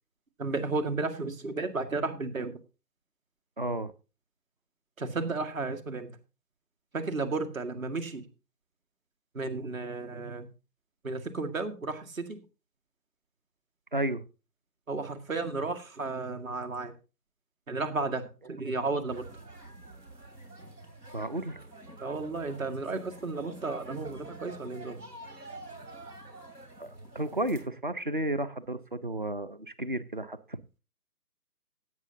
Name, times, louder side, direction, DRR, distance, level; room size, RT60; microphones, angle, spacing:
voice 1, 0.4-2.6 5.0-6.2 6.9-8.3 9.3-10.5 11.0-12.4 14.9-16.9 17.7-19.3 22.0-25.0, right 3 dB, 55° right, 8 dB, 2.2 m, -33 dB
voice 2, 3.6-3.9 13.9-14.2 21.1-21.6 26.8-30.6, right 1 dB, 35° right, 13 dB, 0.6 m, -32 dB
sound 1, 19.1-27.7, right 2 dB, 85° right, 3.0 m, -47 dB
16.5 x 8.4 x 2.8 m, 0.32 s
figure-of-eight pair, 150°, 48 cm